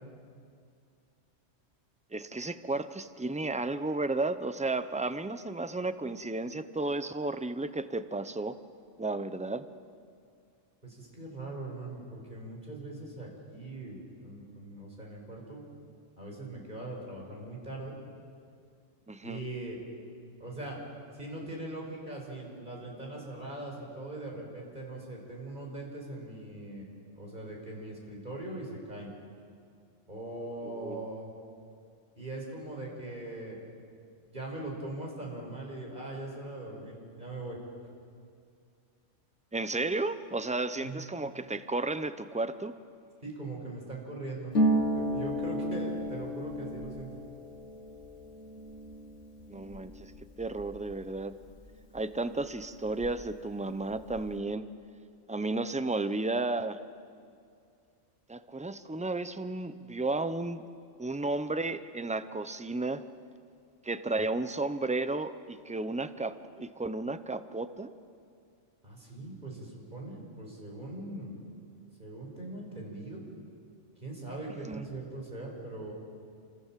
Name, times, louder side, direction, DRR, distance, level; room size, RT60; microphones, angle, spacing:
voice 1, 2.1-8.6 9.0-9.7 19.1-19.4 30.6-31.0 39.5-42.7 49.5-50.1 50.4-51.4 51.9-54.7 55.3-56.8 58.3-60.7 61.0-63.0 63.8-67.9 74.6-74.8, right 2 dB, 5° right, 12 dB, 0.6 m, -33 dB
voice 2, 10.8-15.6 16.2-18.0 19.2-19.8 20.4-20.8 21.2-29.1 30.1-31.3 32.2-33.6 34.3-37.6 40.8-41.0 43.2-44.5 44.9-47.2 68.8-71.4 72.0-73.2 74.0-75.9, right 2 dB, 40° right, -1 dB, 5.6 m, -41 dB
Harp, 44.5-52.0 52.3-53.4 53.6-54.3, equal, 70° left, 2.0 m, -33 dB
29.0 x 27.0 x 7.6 m, 2.3 s
omnidirectional pair, 1.3 m